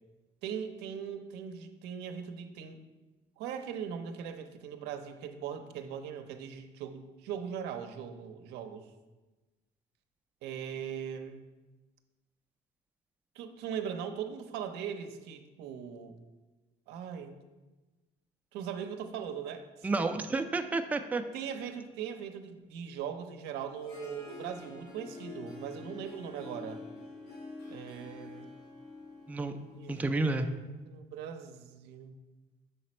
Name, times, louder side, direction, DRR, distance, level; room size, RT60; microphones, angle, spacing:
voice 1, 0.4-2.8 3.4-8.9 10.4-11.4 13.3-16.2 16.9-17.5 18.5-19.7 21.3-26.8 27.7-28.5 29.7-30.5 30.8-32.2, right 8 dB, 90° right, 7 dB, 0.6 m, -40 dB
voice 2, 19.8-21.2 29.3-29.5 29.9-30.5, right 3 dB, 10° right, 6 dB, 0.4 m, -30 dB
Harp, 23.6-30.7, left 3 dB, 80° left, 1.4 m, -47 dB
6.8 x 4.0 x 4.2 m, 1.2 s
cardioid pair, 110°, 17 cm